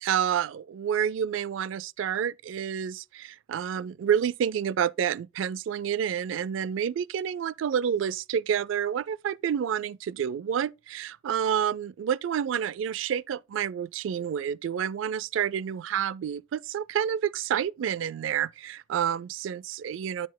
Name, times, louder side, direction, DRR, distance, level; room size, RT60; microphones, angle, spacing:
voice 1, 0.0-20.3, right 8 dB, 80° right, 0.3 m, -29 dB
8.3 x 6.3 x 2.2 m
head